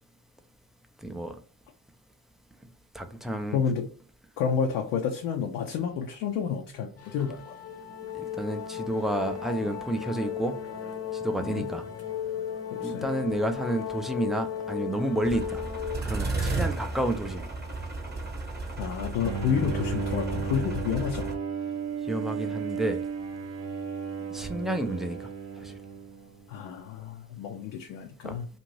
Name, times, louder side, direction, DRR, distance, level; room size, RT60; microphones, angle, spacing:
voice 1, 1.0-1.3 2.9-3.6 8.1-10.6 11.1-11.9 12.8-15.6 16.1-17.5 22.1-23.0 24.3-25.3 25.6-25.7 28.2-28.4, right 1 dB, ahead, 0.3 m, -30 dB
voice 2, 3.5-3.9 4.4-7.6 11.4-11.7 12.7-13.1 16.6-16.7 18.8-21.4 26.5-28.5, left 7 dB, 75° left, 0.6 m, -30 dB
sound 1, 7.0-16.0, left 8 dB, 30° left, 0.7 m, -35 dB
sound 2, 15.2-21.3, right 3 dB, 20° right, 1.0 m, -33 dB
Bowed string instrument, 19.2-26.5, right 6 dB, 55° right, 0.8 m, -34 dB
2.6 x 2.5 x 3.1 m
hypercardioid pair, 60°, 49 cm